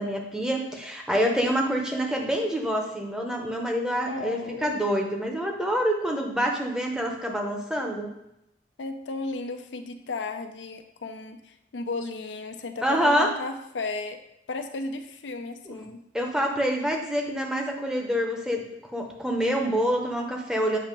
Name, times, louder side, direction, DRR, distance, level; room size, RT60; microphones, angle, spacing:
voice 1, 0.0-8.1 12.8-13.3 15.7-15.9 16.1-18.7 18.9-20.8, equal, 5° right, 1 dB, 0.7 m, -26 dB
voice 2, 4.1-4.8 8.8-14.2 14.5-16.0, left 3 dB, 90° left, 7 dB, 0.5 m, -34 dB
7.4 x 2.8 x 5.2 m, 0.83 s
head